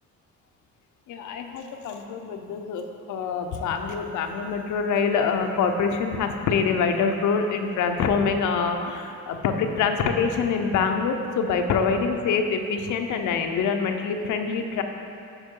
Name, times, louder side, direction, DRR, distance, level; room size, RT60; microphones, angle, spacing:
voice 1, 1.1-14.8, left 5 dB, 80° left, 5 dB, 0.6 m, -25 dB
8.0 x 4.8 x 3.7 m, 2.5 s
cardioid pair, 90°, 30 cm